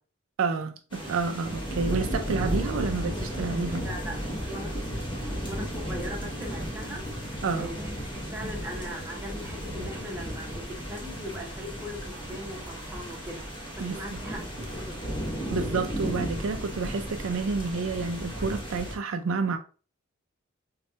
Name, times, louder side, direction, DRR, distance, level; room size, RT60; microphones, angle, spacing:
voice 1, 0.4-3.8 7.4-7.7 13.8-14.2 15.5-19.6, right 4 dB, 70° right, 0.4 m, -29 dB
sound 1, 0.9-19.0, equal, 25° left, 1.0 m, -34 dB
voice 2, 3.8-4.8 5.4-7.9 8.3-13.4 13.7-15.1, equal, 10° right, 0.9 m, -40 dB
4.2 x 2.2 x 2.7 m
head